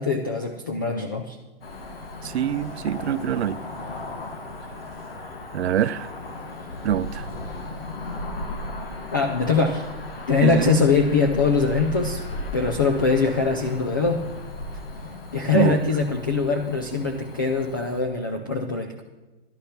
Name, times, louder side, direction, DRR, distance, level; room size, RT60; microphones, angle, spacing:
voice 1, 0.0-1.4 9.1-9.8 10.3-12.2 12.5-14.2 15.3-19.0, left 4 dB, 20° left, 4 dB, 0.4 m, -22 dB
Cricket / Motor vehicle (road), 1.6-18.0, left 2 dB, 65° left, 2.3 m, -36 dB
voice 2, 2.2-3.6 5.5-6.1 6.8-7.3 10.4-10.7 15.5-15.8, right 10 dB, 85° right, 15 dB, 0.6 m, -24 dB
11.5 x 9.8 x 5.7 m, 1.2 s
hypercardioid pair, 165°, 32 cm